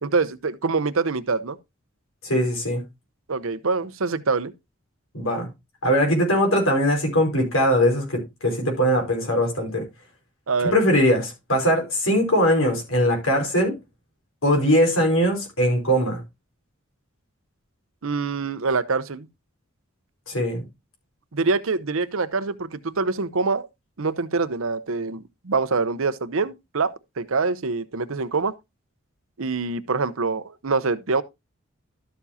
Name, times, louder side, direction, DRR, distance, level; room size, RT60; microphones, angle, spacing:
voice 1, 0.0-1.6 3.3-4.5 10.5-10.8 18.0-19.3 21.3-23.7 24.0-28.5 29.4-31.2, right 4 dB, 75° right, 0.8 m, -25 dB
voice 2, 2.2-2.8 5.1-5.5 5.8-9.9 10.7-13.7 14.4-16.2 20.3-20.6, equal, 85° left, 4.8 m, -21 dB
12.5 x 7.1 x 2.8 m
head